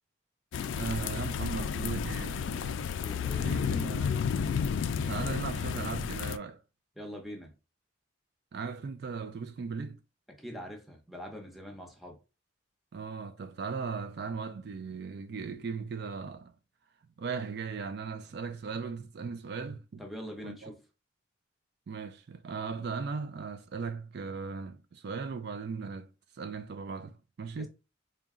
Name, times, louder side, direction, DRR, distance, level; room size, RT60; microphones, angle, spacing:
sound 1, 0.5-6.4, left 7 dB, 70° left, 0.3 m, -32 dB
voice 1, 0.7-2.9 3.4-4.2 4.8-6.6 8.5-10.0 12.9-16.5 17.2-20.0 20.4-20.7 21.9-26.1 26.3-27.7, right 5 dB, 55° right, 0.3 m, -38 dB
voice 2, 3.0-3.5 7.0-7.5 10.3-12.2 20.0-20.8 27.6-27.7, equal, ahead, 0.7 m, -43 dB
3.9 x 2.2 x 3.6 m
head